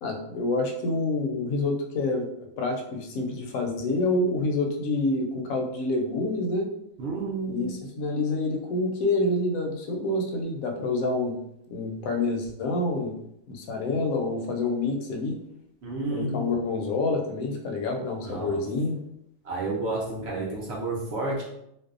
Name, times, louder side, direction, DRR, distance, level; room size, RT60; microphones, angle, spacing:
voice 1, 0.0-2.3 2.6-6.7 7.5-11.4 11.7-13.1 13.5-15.4 16.1-19.0, left 2 dB, 75° left, 2 dB, 0.9 m, -27 dB
voice 2, 7.0-7.8 15.8-16.5 18.2-18.6 19.4-21.4, right 2 dB, 65° right, -3 dB, 0.6 m, -31 dB
2.6 x 2.1 x 2.4 m, 0.77 s
omnidirectional pair, 1.6 m